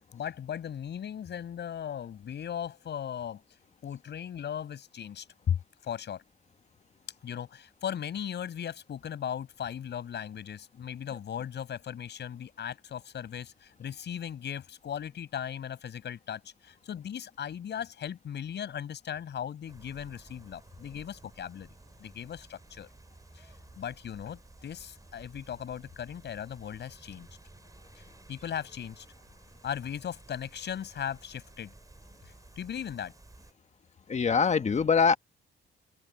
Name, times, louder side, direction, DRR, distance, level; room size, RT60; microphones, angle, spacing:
voice 1, 0.0-3.4 3.8-6.2 7.2-21.7 22.0-22.9 23.3-27.3 28.0-29.0 29.6-31.7 32.6-33.1, left 9 dB, 60° left, 6.9 m, -37 dB
sound 1, 19.7-33.5, right 2 dB, 15° right, 6.5 m, -54 dB
voice 2, 34.1-35.2, left 5 dB, 35° left, 1.4 m, -23 dB
open air
cardioid pair, 90°, 20 cm